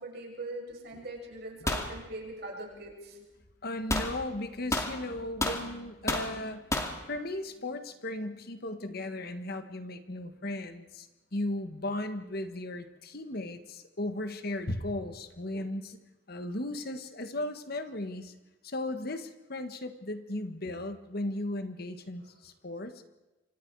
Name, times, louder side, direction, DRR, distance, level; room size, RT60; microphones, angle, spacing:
voice 1, 0.0-3.2, right 2 dB, 55° right, -1 dB, 7.3 m, -41 dB
sound 1, 1.7-1.9 3.9-4.1 4.7-5.6 6.1-6.3 6.7-7.0, left 1 dB, 15° left, 2.4 m, -30 dB
voice 2, 3.6-6.6 7.1-16.0 16.3-18.3 18.6-23.0, left 1 dB, 50° left, 9 dB, 1.5 m, -36 dB
29.5 x 25.5 x 4.8 m, 1.1 s
head